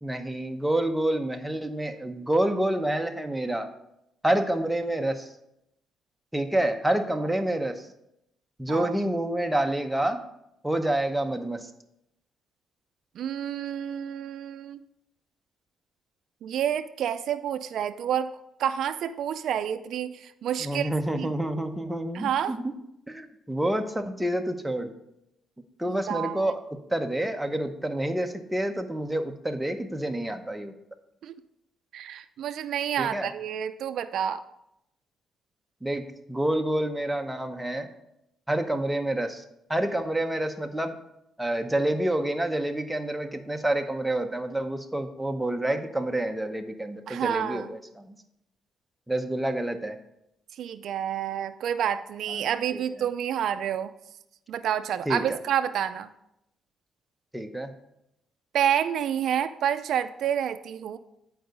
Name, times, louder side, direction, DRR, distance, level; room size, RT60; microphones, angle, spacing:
voice 1, 0.0-3.7 4.2-5.2 6.3-7.8 8.6-10.2 10.6-11.7 20.6-22.8 23.1-24.9 25.8-26.6 26.9-30.7 33.0-33.3 35.8-37.9 38.5-39.4 39.7-41.0 41.4-48.1 49.1-50.0 52.3-52.8 55.1-55.4 57.3-57.7, right 1 dB, 5° right, 5 dB, 0.8 m, -28 dB
voice 2, 13.2-14.8 16.4-18.3 18.6-20.9 21.1-21.3 22.1-22.6 25.9-26.5 31.2-31.4 31.9-34.4 47.1-47.7 50.6-53.9 54.5-56.1 58.5-61.0, right 9 dB, 70° right, 10 dB, 0.4 m, -29 dB
8.6 x 4.7 x 5.3 m, 0.82 s
cardioid pair, 90°, 0 cm